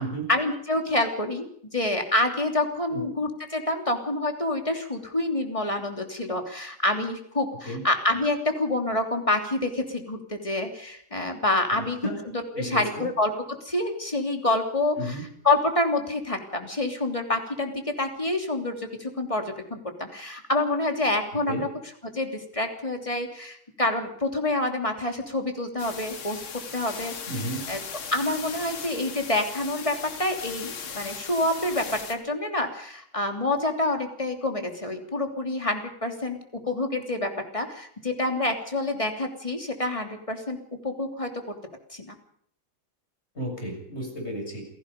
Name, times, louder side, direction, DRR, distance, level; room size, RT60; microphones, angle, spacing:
voice 1, 0.3-1.5 1.7-12.0 12.3-15.1 15.4-21.7 22.1-26.4 26.7-27.1 27.7-27.8 28.1-36.4 36.7-40.6 40.8-41.3 41.9-42.1, left 2 dB, 15° left, 4 dB, 3.1 m, -27 dB
voice 2, 11.7-12.2 12.5-13.1 15.0-15.2 21.5-21.6 27.3-27.6 43.4-44.6, right 1 dB, 30° left, 2 dB, 7.2 m, -33 dB
sound 1, 25.8-32.2, left 6 dB, 90° left, 2.9 m, -38 dB
28.0 x 17.5 x 5.3 m, 0.65 s
omnidirectional pair, 2.2 m